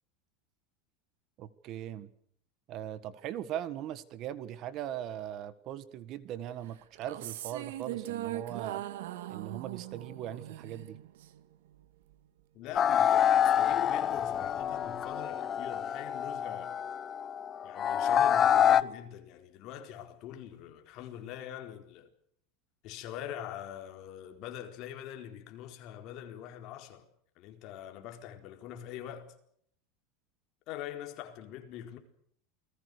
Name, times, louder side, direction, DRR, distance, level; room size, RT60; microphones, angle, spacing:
voice 1, 1.4-2.1 2.7-8.8 9.3-11.0, right 11 dB, 40° right, 1.6 m, -40 dB
sound 1, 6.9-11.4, right 14 dB, 85° right, 1.9 m, -40 dB
voice 2, 12.5-16.8 17.6-22.1 22.8-27.1 27.4-29.3 30.7-32.0, left 10 dB, 45° left, 4.2 m, -43 dB
sound 2, 12.8-18.8, left 9 dB, 25° left, 0.9 m, -27 dB
28.5 x 20.5 x 6.7 m
supercardioid pair, 160°, 0 cm